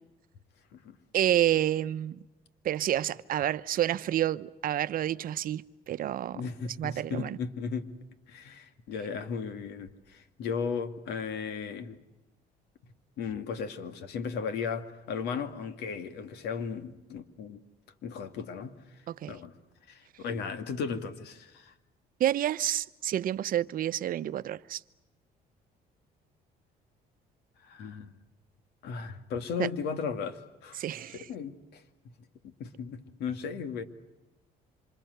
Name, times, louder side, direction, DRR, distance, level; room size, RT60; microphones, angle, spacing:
voice 1, 1.1-2.2 2.6-6.4 6.8-7.4 19.1-19.3 22.2-24.8 29.6-29.7 30.7-31.3, right 12 dB, 55° right, 0.9 m, -29 dB
voice 2, 6.3-7.9 8.3-12.0 13.2-17.6 18.0-18.8 19.3-19.5 19.9-21.7 27.6-28.1 28.8-30.8 31.1-31.8 32.4-33.8, left 6 dB, 80° left, 2.3 m, -36 dB
27.0 x 26.5 x 8.0 m
cardioid pair, 110°, 17 cm